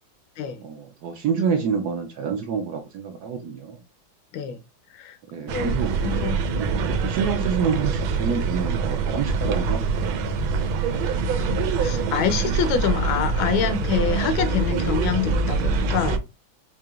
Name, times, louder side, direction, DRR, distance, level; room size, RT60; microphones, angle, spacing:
voice 1, 0.6-3.8 5.3-6.3 6.6-10.2, right 6 dB, 70° right, 1.0 m, -28 dB
voice 2, 4.9-6.4 11.5-16.2, left 8 dB, 80° left, 1.4 m, -26 dB
sound 1, 5.5-16.2, right 4 dB, 85° right, 1.4 m, -24 dB
4.9 x 2.8 x 2.3 m
omnidirectional pair, 2.2 m